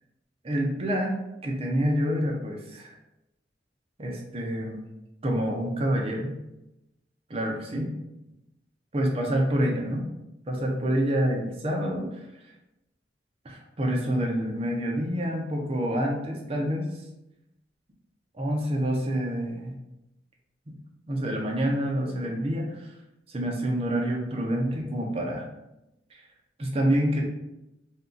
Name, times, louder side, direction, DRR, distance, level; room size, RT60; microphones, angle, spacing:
voice 1, 0.4-2.9 4.0-4.8 5.2-6.3 7.3-7.9 8.9-10.0 10.5-12.2 13.4-16.9 18.3-19.7 21.1-22.9 23.3-25.4 26.1-26.2 26.6-27.2, equal, 30° right, 0 dB, 0.6 m, -27 dB
2.7 x 2.3 x 3.6 m, 0.89 s
head